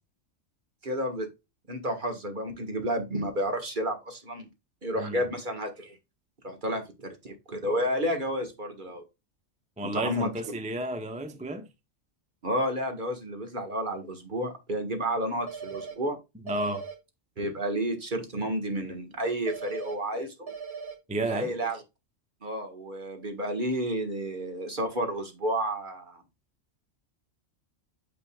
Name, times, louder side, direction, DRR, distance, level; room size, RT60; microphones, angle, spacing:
voice 1, 0.8-1.3 1.7-4.5 4.8-6.0 6.4-9.0 9.8-10.3 12.4-16.2 17.4-20.5 21.2-21.8 22.4-26.2, equal, 40° right, 1.7 m, -31 dB
voice 2, 9.8-11.7 16.4-16.8 21.1-21.5, right 1 dB, 10° right, 0.6 m, -32 dB
sound 1, 15.5-15.9 16.5-16.9 19.5-19.9 20.5-20.9, right 6 dB, 55° right, 1.7 m, -39 dB
8.9 x 5.2 x 2.3 m
omnidirectional pair, 1.3 m